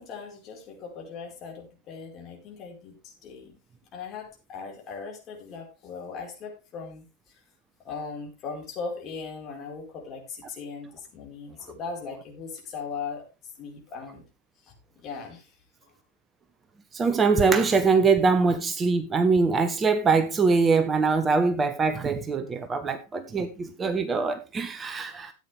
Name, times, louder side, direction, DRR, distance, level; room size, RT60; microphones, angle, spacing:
voice 1, 0.0-3.6 3.9-7.4 7.8-14.2 14.6-15.5, left 5 dB, 35° left, 4.7 m, -39 dB
voice 2, 16.9-25.3, right 4 dB, 20° right, 1.0 m, -23 dB
14.0 x 9.0 x 3.4 m
figure-of-eight pair, 90°, 0 cm